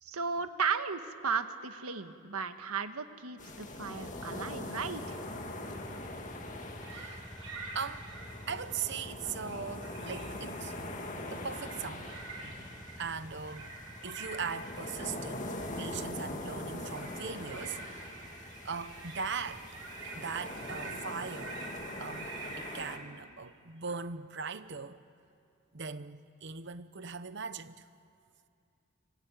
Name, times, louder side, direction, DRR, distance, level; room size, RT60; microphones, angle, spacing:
voice 1, 0.0-5.2, right 5 dB, 90° right, 1.5 m, -35 dB
sound 1, 3.4-23.0, left 1 dB, 35° left, 2.1 m, -43 dB
sound 2, 4.0-20.6, equal, 5° left, 1.2 m, -51 dB
sound 3, 6.8-8.9 9.2-10.9 11.3-23.0, right 3 dB, 70° right, 5.9 m, -47 dB
voice 2, 6.9-7.2 7.7-8.1 8.5-10.7 11.3-12.2 13.0-13.7 14.0-18.0 18.6-19.8 20.1-21.6 22.0-25.0 25.7-27.8, right 5 dB, 55° right, 1.0 m, -40 dB
25.5 x 23.5 x 9.3 m
head